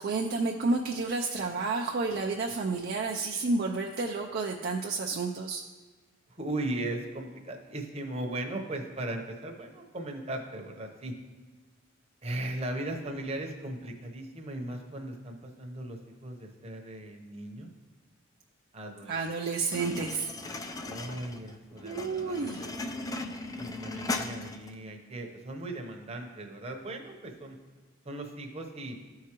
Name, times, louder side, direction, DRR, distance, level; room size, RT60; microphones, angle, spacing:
voice 1, 0.0-5.6 19.1-20.3 21.8-22.6, right 3 dB, 50° right, 1 dB, 0.4 m, -30 dB
voice 2, 6.3-11.1 12.2-17.7 18.7-19.2 20.7-22.7 23.6-27.6 28.0-29.0, right 1 dB, 30° right, 2 dB, 0.8 m, -38 dB
sound 1, 19.7-24.8, left 2 dB, 15° left, 0.4 m, -37 dB
13.0 x 4.7 x 3.0 m, 1.4 s
head